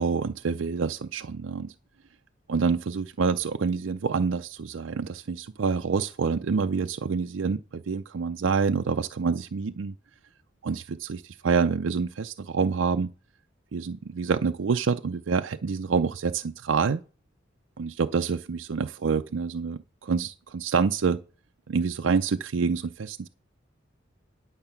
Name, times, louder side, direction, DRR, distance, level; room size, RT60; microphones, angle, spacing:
voice 1, 0.0-1.7 2.5-9.9 10.6-13.1 13.7-17.0 17.8-21.2 21.7-23.3, right 5 dB, 80° right, 0.5 m, -27 dB
11.0 x 6.5 x 5.7 m
head